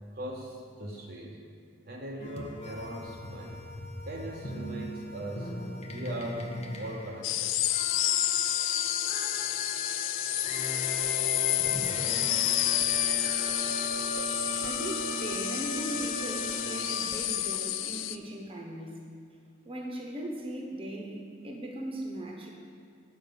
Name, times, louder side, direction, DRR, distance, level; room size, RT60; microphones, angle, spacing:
voice 1, 0.1-1.4 1.9-3.7 4.1-5.6 5.9-7.5, right 1 dB, 55° right, -2 dB, 0.9 m, -39 dB
sound 1, 2.2-17.6, equal, 35° left, 0.7 m, -38 dB
sound 2, 7.2-18.2, left 14 dB, 80° left, 0.4 m, -30 dB
Dishes pots and pans, 11.0-17.3, equal, 5° right, 0.7 m, -52 dB
voice 2, 14.3-19.0 19.6-22.5, right 1 dB, 30° right, -1 dB, 1.1 m, -39 dB
8.1 x 5.6 x 6.9 m, 2.2 s
head